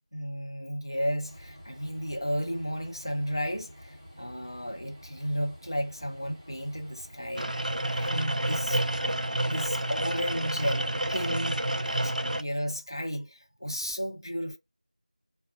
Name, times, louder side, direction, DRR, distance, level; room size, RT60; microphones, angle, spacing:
voice 1, 0.1-8.8 9.4-10.8 11.1-11.5 11.9-14.6, equal, 30° left, 0.4 m, -33 dB
Train, 1.2-10.0, equal, 10° right, 0.6 m, -49 dB
sound 1, 7.4-12.4, right 1 dB, 85° right, 0.5 m, -29 dB
2.5 x 2.1 x 3.6 m
figure-of-eight pair, 175°, 4 cm